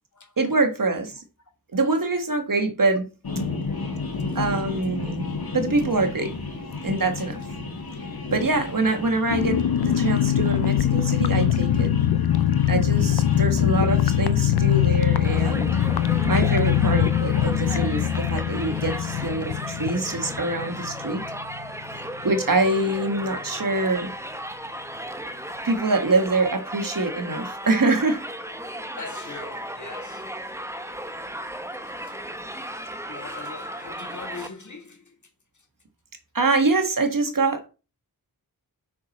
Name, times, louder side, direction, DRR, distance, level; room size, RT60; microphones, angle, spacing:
voice 1, 0.4-1.2 1.7-3.0 4.3-5.3 5.5-6.3 6.8-7.4 8.3-11.9 12.7-15.8 16.2-21.2 22.2-24.1 25.6-28.2 36.3-37.7, right 3 dB, 60° right, 1.6 m, -24 dB
sound 1, 3.2-19.3, left 3 dB, 70° left, 2.3 m, -34 dB
sound 2, 9.3-21.6 21.9-22.0 22.3-22.6, left 10 dB, 85° left, 0.6 m, -22 dB
Crowd, 15.2-34.5, right 1 dB, 5° right, 0.9 m, -35 dB
voice 2, 28.9-30.4 32.0-32.1 33.0-35.2 35.5-35.7 37.5-37.6, left 3 dB, 50° left, 1.7 m, -42 dB
6.3 x 5.9 x 4.1 m
cardioid pair, 50°, 37 cm